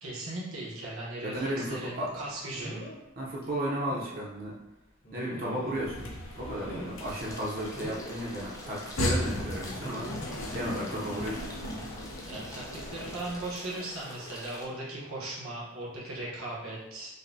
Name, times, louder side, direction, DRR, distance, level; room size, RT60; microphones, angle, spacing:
voice 1, 0.0-2.9 5.2-5.6 12.2-17.1, right 2 dB, 80° right, -5 dB, 1.0 m, -38 dB
voice 2, 1.2-2.1 3.2-4.5 5.1-6.1 6.4-10.1 10.5-11.8, equal, 45° right, -4 dB, 0.6 m, -34 dB
sound 1, 1.6-1.8 2.5-3.0 3.4-3.5 3.9-4.1 5.0-5.9 6.4-7.1 7.7-8.2 9.7-10.2 11.3-11.5 11.9-12.0, right 1 dB, 45° left, 1.0 m, -43 dB
sound 2, 5.7-13.6, equal, 65° left, 0.6 m, -37 dB
sound 3, 7.0-14.6, left 1 dB, 15° left, 0.5 m, -45 dB
5.2 x 2.1 x 2.6 m, 0.94 s
head